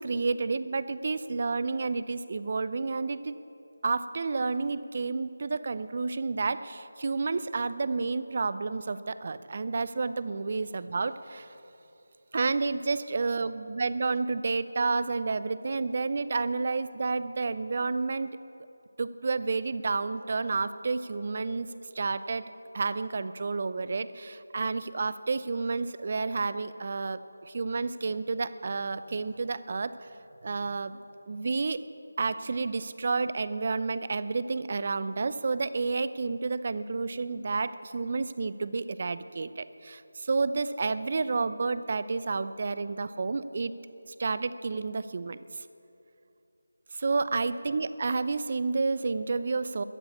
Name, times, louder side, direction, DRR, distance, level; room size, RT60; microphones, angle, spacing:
voice 1, 0.0-3.3 3.8-11.5 12.3-18.3 19.0-21.7 21.9-22.5 22.7-30.1 30.4-31.0 31.3-31.9 32.2-43.7 44.1-45.6 46.9-49.8, right 4 dB, 40° right, 14 dB, 0.6 m, -30 dB
13.5 x 10.5 x 8.4 m, 2.7 s
figure-of-eight pair, 165°, 0 cm